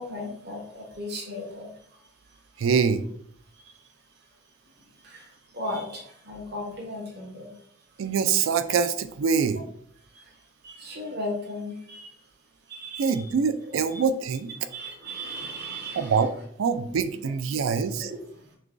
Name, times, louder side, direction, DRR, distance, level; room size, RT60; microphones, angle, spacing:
voice 1, 0.0-2.4 3.5-3.9 4.8-7.6 10.0-12.2 12.7-13.3 14.6-16.3 18.0-18.5, left 1 dB, 55° right, -1 dB, 1.1 m, -37 dB
voice 2, 2.6-3.0 8.0-9.6 13.0-14.5 16.0-16.3 16.6-18.1, right 6 dB, 75° right, 10 dB, 0.4 m, -24 dB
6.2 x 2.3 x 2.5 m, 0.64 s
head